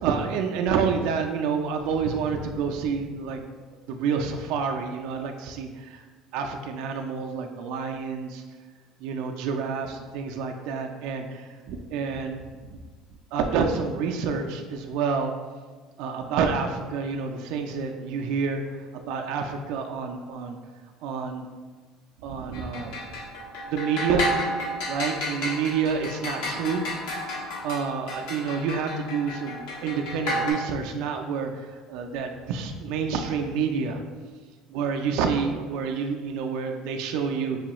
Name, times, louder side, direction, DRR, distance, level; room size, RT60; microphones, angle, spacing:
voice 1, 0.0-3.4 3.9-6.0 6.3-8.4 9.0-12.4 12.7-12.8 13.3-15.3 16.0-18.6 18.9-20.6 21.0-21.5 22.2-23.0 23.7-24.3 24.9-26.8 27.6-31.5 31.9-34.0 34.7-37.6, right 5 dB, 70° right, 3 dB, 0.3 m, -28 dB
sound 1, 22.5-30.5, left 1 dB, 80° left, 1.0 m, -32 dB
4.8 x 2.3 x 2.9 m, 1.4 s
cardioid pair, 155°, 0 cm